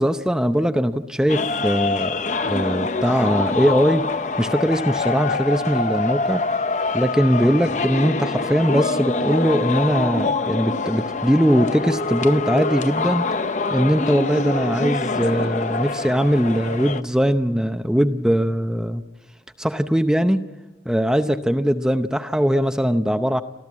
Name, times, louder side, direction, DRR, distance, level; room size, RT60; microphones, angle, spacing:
voice 1, 0.0-4.1 4.4-6.4 6.9-13.3 13.7-19.0 19.6-20.4 20.9-23.4, equal, 5° right, 8 dB, 0.7 m, -20 dB
sound 1, 1.3-17.0, left 3 dB, 40° left, 0.7 m, -25 dB
28.5 x 14.0 x 8.5 m, 1.2 s
head